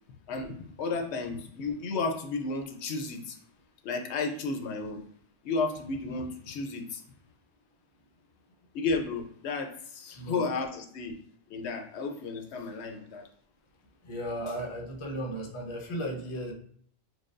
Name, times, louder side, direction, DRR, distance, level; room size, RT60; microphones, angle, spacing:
voice 1, 0.3-3.4 3.8-5.0 5.4-7.0 8.7-11.2 11.5-13.3, left 3 dB, 70° left, 4 dB, 0.9 m, -33 dB
voice 2, 14.0-16.5, equal, 35° left, 0 dB, 0.6 m, -35 dB
6.3 x 2.2 x 2.5 m, 0.63 s
omnidirectional pair, 1.2 m